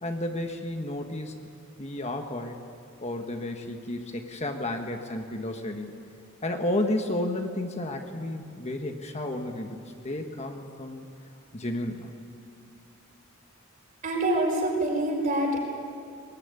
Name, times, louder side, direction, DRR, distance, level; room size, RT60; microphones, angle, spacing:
voice 1, 0.0-1.4 1.8-2.6 3.0-6.0 6.4-11.0 11.5-12.1, left 1 dB, 30° left, 4 dB, 1.4 m, -32 dB
voice 2, 14.0-15.6, right 1 dB, 40° right, 0 dB, 5.4 m, -25 dB
21.0 x 20.0 x 9.7 m, 2.4 s
head